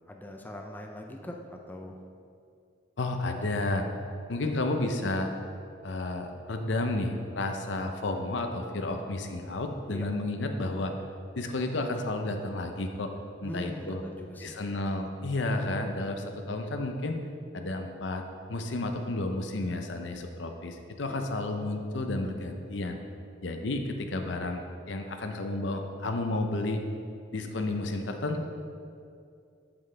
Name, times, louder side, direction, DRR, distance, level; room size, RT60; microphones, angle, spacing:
voice 1, 0.0-2.0 9.9-10.4 13.4-14.6 21.1-21.2, left 1 dB, 10° left, 2 dB, 0.5 m, -42 dB
voice 2, 3.0-3.9 4.3-5.3 5.8-10.9 11.4-13.1 13.4-14.0 14.4-17.2 17.5-23.0 23.4-26.8 27.3-28.5, left 2 dB, 75° left, 5 dB, 0.7 m, -31 dB
7.9 x 7.6 x 3.3 m, 2.4 s
head